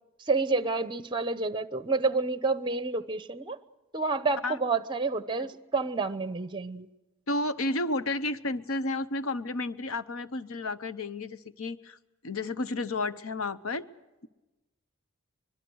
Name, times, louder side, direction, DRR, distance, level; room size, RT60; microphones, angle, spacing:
voice 1, 0.2-3.6 3.9-6.9, right 3 dB, 25° right, 14 dB, 0.9 m, -29 dB
voice 2, 7.3-12.0 12.2-13.9, left 2 dB, 90° left, 13 dB, 0.9 m, -32 dB
25.0 x 22.0 x 6.3 m, 1.1 s
head